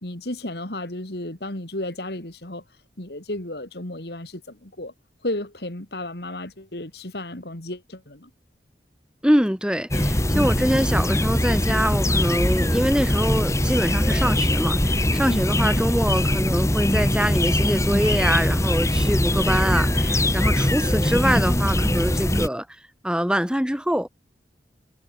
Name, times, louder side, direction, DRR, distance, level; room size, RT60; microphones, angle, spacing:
voice 1, 0.0-2.6 3.0-4.9 5.2-8.3 15.2-15.4, left 1 dB, 65° left, 3.3 m, -33 dB
voice 2, 9.2-22.7 23.0-24.1, equal, 5° right, 2.8 m, -24 dB
sound 1, 9.9-22.5, left 1 dB, 15° left, 2.4 m, -22 dB
head